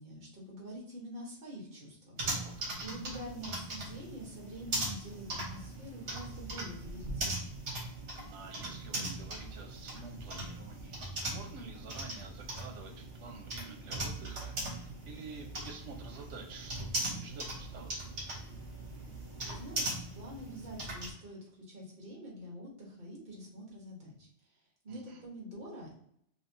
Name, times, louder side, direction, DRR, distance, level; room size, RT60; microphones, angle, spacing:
voice 1, 0.0-2.2 2.8-7.4 19.5-24.3 24.8-25.9, equal, 45° right, -3 dB, 1.3 m, -46 dB
sound 1, 2.2-21.1, right 2 dB, 70° right, 1.3 m, -39 dB
voice 2, 2.3-2.8 8.3-18.0 24.9-25.2, right 4 dB, 85° right, 4 dB, 1.0 m, -49 dB
3.3 x 2.7 x 2.7 m, 0.71 s
omnidirectional pair, 1.2 m